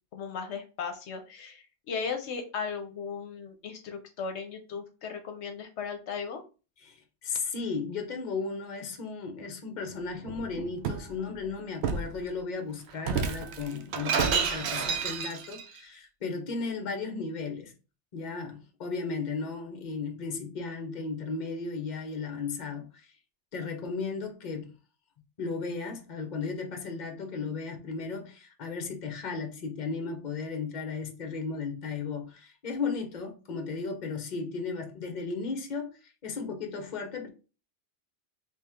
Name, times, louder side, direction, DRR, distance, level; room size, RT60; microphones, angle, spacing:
voice 1, 0.1-6.4, left 5 dB, 75° left, 0.9 m, -36 dB
voice 2, 6.8-17.7 18.1-23.1 23.5-24.8 25.4-37.3, left 4 dB, 45° left, 0.9 m, -35 dB
Shatter, 10.2-11.1 11.8-12.1 13.0-15.6, right 6 dB, 70° right, 0.8 m, -30 dB
3.2 x 3.0 x 3.5 m
omnidirectional pair, 1.2 m